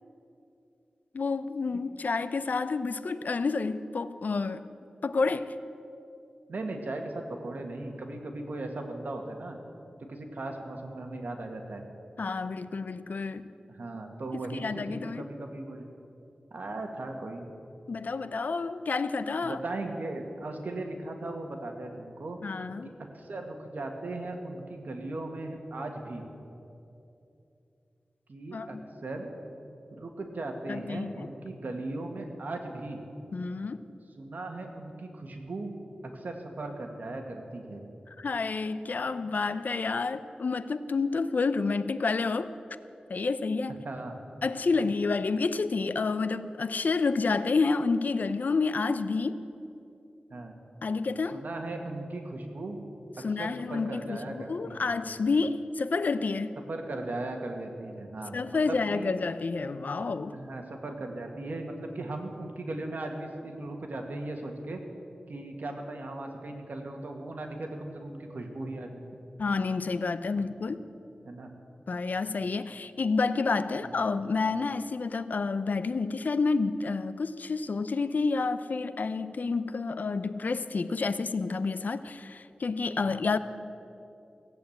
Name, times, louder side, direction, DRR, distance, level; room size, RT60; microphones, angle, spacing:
voice 1, 1.1-4.6 5.0-5.5 12.2-13.5 14.5-15.2 17.9-19.6 22.4-22.9 28.5-28.8 30.7-31.3 33.3-33.9 38.2-42.5 43.1-43.8 44.4-49.5 50.8-51.4 53.2-56.6 58.3-60.4 69.4-70.8 71.9-83.4, left 4 dB, 70° left, 13 dB, 0.6 m, -29 dB
voice 2, 6.5-9.6 10.1-11.8 13.7-15.9 16.5-17.4 19.4-22.4 23.1-26.2 28.3-29.3 29.9-33.0 34.2-35.8 36.0-37.8 43.8-44.2 50.3-50.6 51.3-52.8 53.2-54.9 56.7-59.2 60.0-64.8 65.3-69.0 70.4-70.5 71.2-71.5 73.8-74.0 83.0-83.1, right 2 dB, 75° right, 3 dB, 1.9 m, -38 dB
16.5 x 8.4 x 8.7 m, 2.7 s
wide cardioid pair, 75°, 3 cm